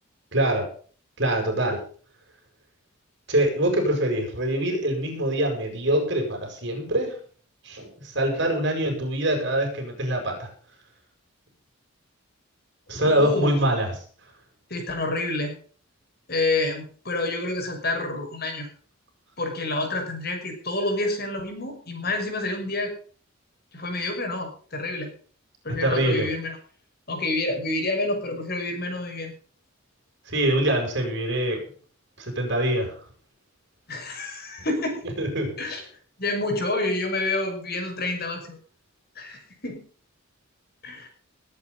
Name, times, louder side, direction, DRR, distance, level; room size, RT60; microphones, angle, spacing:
voice 1, 0.3-0.7 1.2-1.8 3.3-7.2 7.6-10.5 12.9-13.9 25.7-26.3 30.3-31.6 32.2-33.0 35.2-35.6, right 1 dB, 55° right, 2 dB, 7.6 m, -24 dB
voice 2, 13.0-13.6 14.7-15.5 16.3-18.7 19.4-22.9 23.7-25.1 25.6-26.6 27.1-29.3 33.9-35.1 35.6-35.8 36.2-38.6 39.2-39.8 40.8-41.1, left 2 dB, 45° left, 4 dB, 5.7 m, -28 dB
20.5 x 9.6 x 5.4 m, 0.43 s
head